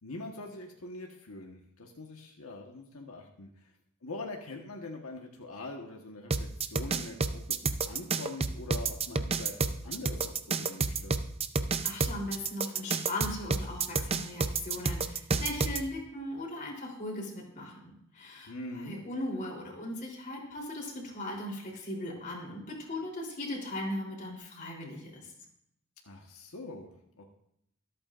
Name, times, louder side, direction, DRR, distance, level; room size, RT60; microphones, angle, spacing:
voice 1, 0.0-3.7 4.0-11.2 18.5-19.0 26.0-26.9 27.2-27.3, left 2 dB, 75° left, 1 dB, 1.4 m, -43 dB
sound 1, 6.3-15.8, right 4 dB, 30° right, 0.6 m, -30 dB
voice 2, 11.8-25.3, left 1 dB, 40° left, -2 dB, 3.6 m, -38 dB
24.5 x 8.6 x 2.6 m, 0.74 s
head